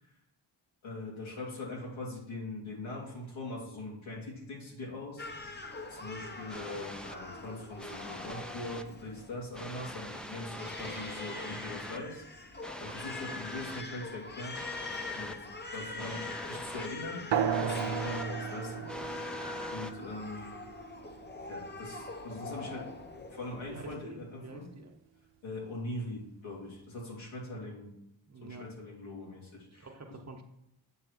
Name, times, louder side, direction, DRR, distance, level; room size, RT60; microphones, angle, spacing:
voice 1, 0.8-5.3 5.9-14.6 15.2-19.0 19.7-20.5 21.5-23.0 23.3-24.7 25.4-27.9 28.4-29.9, left 2 dB, 90° left, -4 dB, 2.7 m, -42 dB
Crying sobbing, 5.2-24.0, left 3 dB, 25° left, 0.8 m, -44 dB
sound 1, 6.5-7.2 7.8-8.8 9.5-12.0 12.6-13.8 14.5-15.3 16.0-16.9 17.5-18.2 18.9-19.9, left 1 dB, ahead, 0.4 m, -42 dB
sound 2, 17.3-22.3, right 8 dB, 70° right, 0.7 m, -35 dB
voice 2, 23.7-25.0 27.7-27.8 28.3-28.7 29.8-30.4, right 3 dB, 35° right, 3 dB, 1.0 m, -48 dB
8.4 x 3.1 x 6.5 m, 0.79 s
cardioid pair, 95°, 46 cm